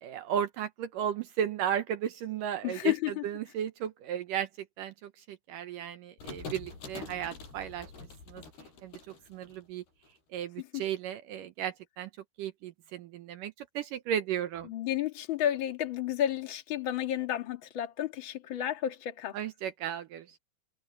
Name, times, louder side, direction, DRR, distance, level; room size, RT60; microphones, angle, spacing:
voice 1, 0.0-2.9 3.2-4.5 4.8-7.9 8.3-8.4 8.8-8.9 9.3-9.8 10.3-12.1 12.4-14.7 19.3-20.4, right 9 dB, 75° right, 2.1 m, -34 dB
voice 2, 2.6-3.2 10.6-10.8 14.6-19.4, left 11 dB, 40° left, 1.9 m, -32 dB
sound 1, 6.2-10.1, left 4 dB, 75° left, 10.0 m, -45 dB
omnidirectional pair, 4.7 m